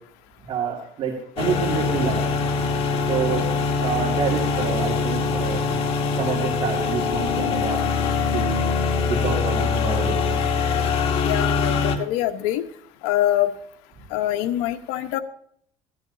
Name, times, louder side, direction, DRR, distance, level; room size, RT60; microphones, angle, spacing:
voice 1, 0.5-2.2 3.1-3.5 3.8-5.6 6.2-7.8 8.3-8.7 9.0-10.4, right 6 dB, 55° right, -1 dB, 2.6 m, -27 dB
sound 1, 1.4-12.0, left 5 dB, 55° left, 1.7 m, -23 dB
voice 2, 11.2-12.6 13.0-13.5 14.1-15.2, left 13 dB, 85° left, 8 dB, 1.0 m, -24 dB
15.0 x 11.5 x 2.7 m, 0.66 s
cardioid pair, 110°, 12 cm